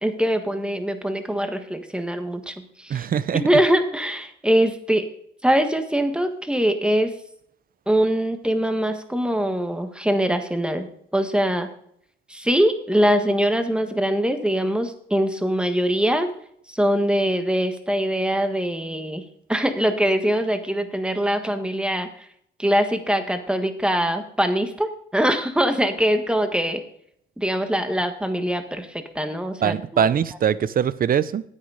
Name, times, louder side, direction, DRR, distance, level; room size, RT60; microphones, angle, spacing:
voice 1, 0.0-3.1 3.3-5.1 5.4-7.1 7.9-11.7 12.3-16.3 16.7-19.2 19.5-22.3 22.6-26.8 27.4-30.1, equal, 5° right, 1.4 m, -23 dB
voice 2, 2.9-3.4 29.6-31.4, right 8 dB, 45° right, 0.6 m, -22 dB
9.6 x 8.7 x 5.0 m
cardioid pair, 90°, 20 cm